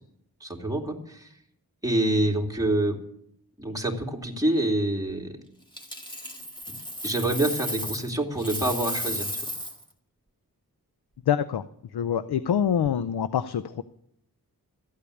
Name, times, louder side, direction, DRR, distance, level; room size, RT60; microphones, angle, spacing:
voice 1, 0.4-1.3 1.8-3.0 3.6-5.3 6.7-6.8 7.0-9.4, right 1 dB, 10° right, 0 dB, 2.8 m, -26 dB
Coin (dropping), 5.7-8.1 8.4-9.8 12.7-12.9, equal, 10° left, 2.1 m, -34 dB
voice 2, 11.3-11.6 11.9-13.8, left 8 dB, 80° left, 13 dB, 0.6 m, -25 dB
13.5 x 8.5 x 8.4 m, 0.73 s
wide cardioid pair, 60°, 38 cm